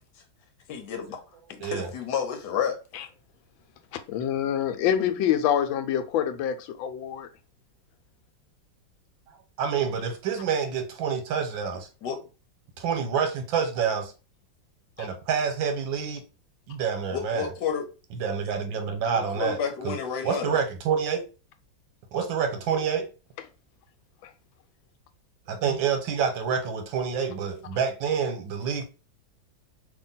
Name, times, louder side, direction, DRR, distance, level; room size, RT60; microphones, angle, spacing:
voice 1, 0.7-1.2 1.5-2.8 12.0-12.2 17.1-17.8 19.1-20.6, left 7 dB, 65° left, 1.2 m, -30 dB
voice 2, 1.6-1.9 9.3-11.9 12.8-14.1 15.0-16.2 16.7-17.5 18.1-19.6 19.8-20.0 20.2-21.2 22.1-23.1 25.5-28.8, right 6 dB, 85° right, 1.6 m, -27 dB
voice 3, 3.9-7.3 15.0-15.1, left 9 dB, 90° left, 1.4 m, -26 dB
2.9 x 2.8 x 3.9 m
omnidirectional pair, 2.1 m